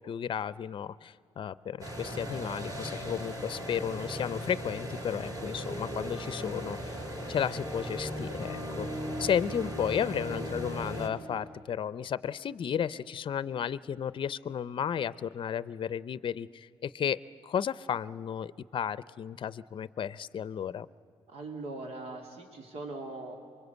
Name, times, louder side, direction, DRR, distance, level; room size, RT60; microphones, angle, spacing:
voice 1, 0.0-7.0 7.3-8.9 9.2-20.9, left 8 dB, 55° left, 18 dB, 0.6 m, -33 dB
sound 1, 1.8-11.1, equal, 35° right, 5.5 m, -37 dB
voice 2, 21.3-23.4, right 2 dB, 80° right, 3 dB, 2.9 m, -40 dB
24.5 x 22.5 x 8.2 m, 2.4 s
cardioid pair, 85°, 11 cm